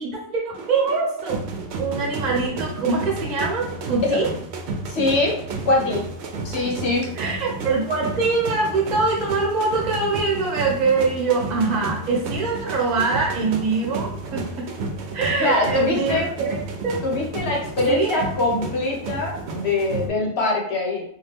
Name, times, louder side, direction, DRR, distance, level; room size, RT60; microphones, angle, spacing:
voice 1, 0.0-1.4 1.8-4.3 7.1-14.7 15.1-16.6 16.8-17.0 17.9-18.2, right 4 dB, 45° right, -2 dB, 0.8 m, -23 dB
sound 1, 0.5-20.1, right 3 dB, 75° right, 0.8 m, -32 dB
voice 2, 4.9-5.4 5.6-6.0 6.4-7.1 15.4-16.3 17.0-21.0, left 2 dB, 70° left, -1 dB, 1.1 m, -23 dB
2.7 x 2.3 x 3.3 m, 0.64 s
omnidirectional pair, 1.1 m